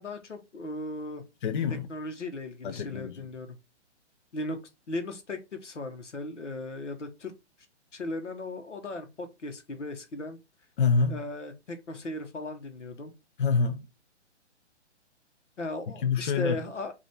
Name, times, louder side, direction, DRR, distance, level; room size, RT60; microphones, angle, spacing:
voice 1, 0.0-1.2 1.9-3.6 4.3-4.6 4.9-7.3 7.9-10.4 11.1-13.1 15.6-16.9, left 2 dB, 85° left, 1.2 m, -37 dB
voice 2, 1.4-1.9 2.6-3.2 10.8-11.2 13.4-13.9 15.9-16.6, left 5 dB, 45° left, 0.5 m, -26 dB
5.0 x 2.7 x 3.3 m
figure-of-eight pair, 135°, 36 cm